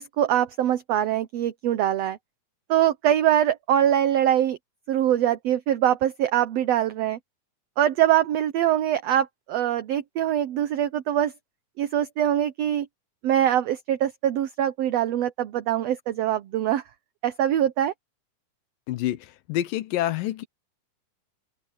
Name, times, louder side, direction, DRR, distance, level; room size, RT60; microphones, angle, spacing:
voice 1, 0.0-2.2 2.7-4.6 4.9-7.2 7.8-11.3 11.8-12.9 13.2-16.8 17.2-17.9, right 11 dB, 70° right, 1.6 m, -23 dB
voice 2, 18.9-20.5, left 13 dB, 90° left, 2.6 m, -27 dB
omnidirectional pair, 3.8 m